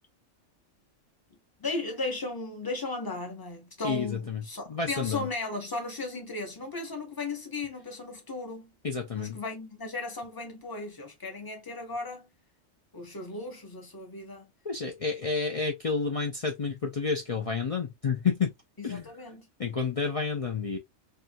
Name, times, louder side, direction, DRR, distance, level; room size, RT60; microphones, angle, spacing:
voice 1, 1.6-8.7 9.1-12.3 12.9-14.5 18.8-19.5, left 3 dB, 25° left, 0.6 m, -36 dB
voice 2, 3.8-5.3 8.8-9.4 14.6-18.5 18.8-19.1 19.6-20.8, left 5 dB, 65° left, 0.3 m, -30 dB
2.7 x 2.4 x 2.6 m
omnidirectional pair, 1.3 m